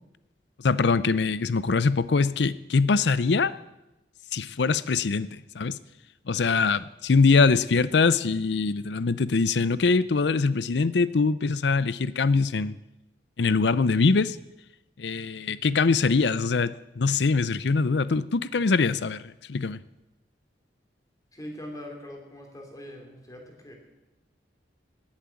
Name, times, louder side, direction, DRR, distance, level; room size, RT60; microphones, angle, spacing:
voice 1, 0.6-3.5 4.3-5.8 6.3-12.8 13.4-14.4 15.0-19.8, left 4 dB, 70° left, 0.6 m, -23 dB
voice 2, 21.3-23.7, left 1 dB, 20° left, 3.1 m, -42 dB
18.0 x 8.7 x 7.1 m
head